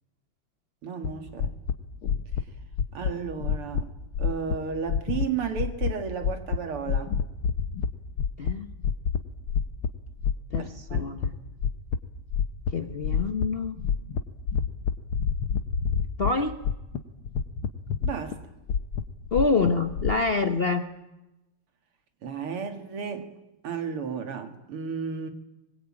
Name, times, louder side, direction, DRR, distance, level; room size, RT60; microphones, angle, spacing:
voice 1, 0.8-1.5 2.9-3.9 4.2-7.2 10.6-11.1 18.0-18.4 22.2-23.3 23.6-25.3, right 6 dB, 85° right, 3.0 m, -33 dB
Irregular fast heartbeat, 1.0-1.1 1.4-1.7 2.0-2.4 2.7-3.1 3.4-3.8 4.1-4.5 4.9-5.3 5.5-5.9 6.2-6.6 6.9-7.9 8.2-8.5 8.8-9.2 9.5-9.9 10.2-11.3 11.6-12.0 12.3-12.7 13.0-13.5 13.8-14.2 14.5-16.3 16.6-17.0 17.2-18.4 18.7-20.2, left 7 dB, 75° left, 2.1 m, -27 dB
voice 2, 8.4-8.7 10.5-11.4 12.7-13.8 16.2-16.6 19.3-20.9, left 4 dB, 45° left, 0.8 m, -26 dB
23.5 x 21.0 x 8.8 m
omnidirectional pair, 2.4 m